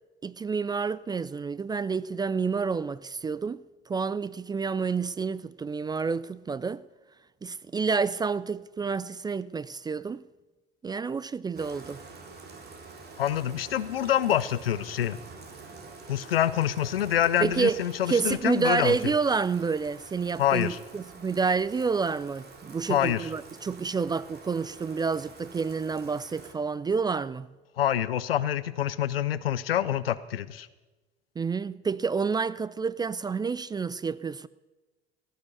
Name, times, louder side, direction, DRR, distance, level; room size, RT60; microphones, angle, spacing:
voice 1, 0.2-6.8 7.4-10.2 10.8-12.0 17.4-17.8 18.1-27.5 31.4-34.5, right 5 dB, 15° right, 0.3 m, -29 dB
Bathtub (filling or washing), 11.6-26.5, right 4 dB, 35° right, 2.4 m, -47 dB
voice 2, 13.2-15.2 16.1-18.9 20.4-20.8 22.9-23.2 27.8-30.7, left 11 dB, 80° left, 0.6 m, -26 dB
16.0 x 6.5 x 8.5 m
figure-of-eight pair, 60°, 29 cm